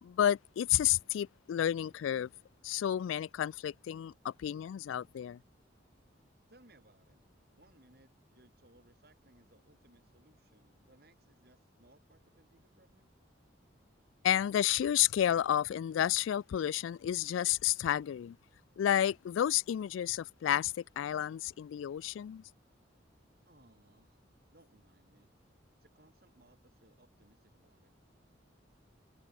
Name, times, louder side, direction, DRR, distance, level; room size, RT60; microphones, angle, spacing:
voice 1, 0.0-2.3 2.6-5.4 14.2-18.4 18.8-22.4, left 11 dB, 85° left, 0.3 m, -31 dB
voice 2, 6.5-7.2 7.5-13.1 23.4-25.3 25.8-27.9, right 1 dB, 55° right, 5.1 m, -65 dB
head